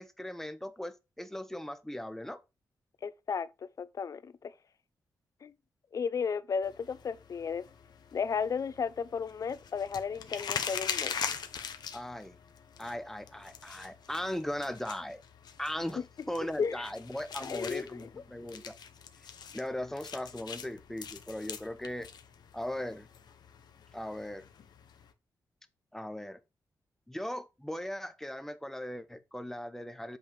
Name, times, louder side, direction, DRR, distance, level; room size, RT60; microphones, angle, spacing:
voice 1, 0.0-2.4 11.9-12.4 12.8-15.2 15.6-18.8 19.5-22.1 22.5-23.1 23.9-24.5 25.9-26.4 27.1-30.2, left 1 dB, 5° left, 0.9 m, -38 dB
voice 2, 3.0-3.5 3.8-4.5 5.4-5.5 5.9-7.6 8.1-11.1 16.6-16.8 17.4-18.1, left 6 dB, 50° left, 0.6 m, -34 dB
sound 1, 6.6-25.1, left 7 dB, 75° left, 1.0 m, -43 dB
8.2 x 3.6 x 5.2 m
cardioid pair, 100°, 7 cm